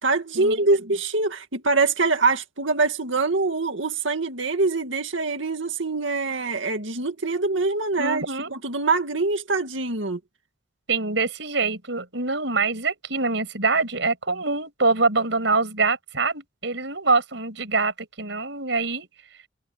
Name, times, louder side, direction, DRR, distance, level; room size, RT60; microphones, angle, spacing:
voice 1, 0.0-10.2, right 3 dB, 90° right, 2.1 m, -24 dB
voice 2, 8.0-8.5 10.9-19.1, right 3 dB, 70° right, 7.9 m, -24 dB
head